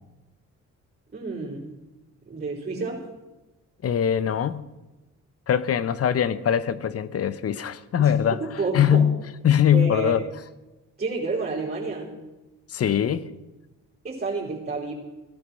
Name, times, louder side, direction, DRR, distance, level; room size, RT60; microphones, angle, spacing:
voice 1, 1.1-1.7 2.2-3.0 8.0-9.0 9.7-10.1 11.0-12.1 14.0-14.9, right 3 dB, 30° right, 4.7 m, -30 dB
voice 2, 3.8-4.6 5.5-8.4 8.7-9.2 9.4-10.2 12.7-13.3, left 9 dB, 50° left, 1.0 m, -22 dB
17.5 x 11.5 x 6.3 m
cardioid pair, 90°, 30 cm